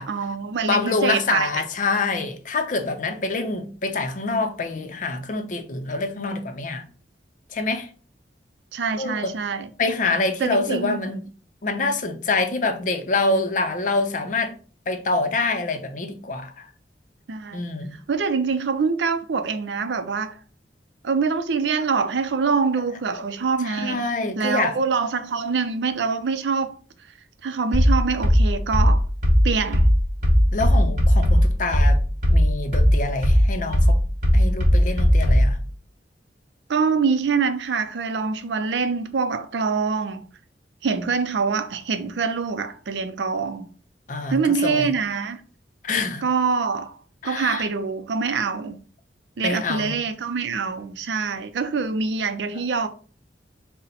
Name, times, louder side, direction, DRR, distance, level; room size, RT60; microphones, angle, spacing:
voice 1, 0.1-1.5 8.7-9.7 10.4-11.0 17.3-17.6 18.1-20.3 21.0-24.0 24.4-26.8 27.4-29.0 29.4-29.9 36.7-40.3 40.8-43.7 44.3-45.4 46.2-47.0 47.2-48.8 49.4-52.9, right 5 dB, 80° right, 0.5 m, -24 dB
voice 2, 0.7-6.8 7.5-7.9 9.0-9.3 9.8-11.2 11.6-14.5 14.9-16.6 17.5-17.9 23.6-24.8 30.5-32.0 32.3-34.0 34.3-35.6 44.1-44.9 45.8-46.2 47.2-47.7 49.4-49.9, left 3 dB, 45° left, 0.5 m, -26 dB
sound 1, 27.7-35.6, equal, 45° right, 1.2 m, -17 dB
4.1 x 2.1 x 4.0 m
head